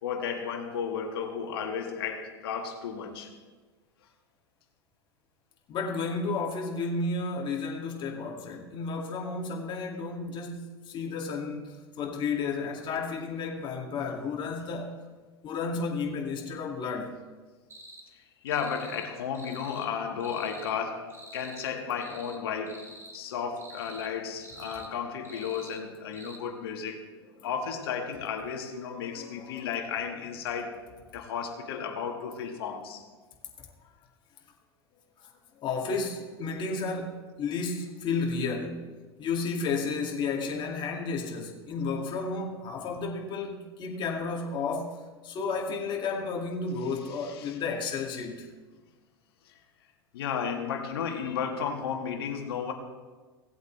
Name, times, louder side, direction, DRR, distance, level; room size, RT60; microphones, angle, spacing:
voice 1, 0.0-3.3 18.1-27.0 27.4-30.8 31.1-33.0 47.1-47.6 49.5-49.6 50.1-52.7, left 7 dB, 65° left, 3 dB, 1.7 m, -34 dB
voice 2, 5.7-15.0 15.4-17.2 25.3-25.4 29.0-29.7 33.6-33.7 35.2-48.5, left 4 dB, 35° left, -1 dB, 2.3 m, -32 dB
sound 1, 17.7-18.0 18.5-19.1 19.3-19.9 20.2-20.7 21.1-21.7 22.0-22.4 22.7-23.2 23.6-24.1 24.4-24.9 25.2-25.8 26.1-26.4, right 2 dB, 15° right, 1.7 m, -48 dB
17.5 x 8.1 x 3.4 m, 1.3 s
hypercardioid pair, 90°, 13 cm